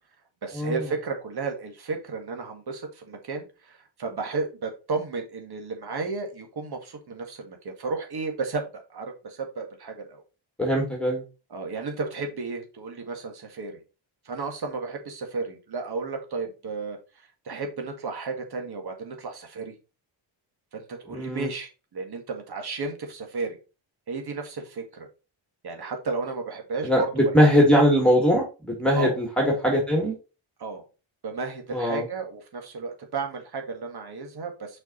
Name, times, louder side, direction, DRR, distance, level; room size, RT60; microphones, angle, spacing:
voice 1, 0.4-10.2 11.5-13.8 14.3-19.7 20.7-23.6 24.1-25.1 25.6-27.5 28.9-29.2 30.6-30.8 31.2-34.8, right 4 dB, 55° right, 4 dB, 2.1 m, -33 dB
voice 2, 10.6-11.2 21.1-21.5 26.8-30.1 31.7-32.0, equal, ahead, -1 dB, 2.2 m, -21 dB
6.0 x 5.3 x 4.0 m, 0.30 s
wide cardioid pair, 130°, 46 cm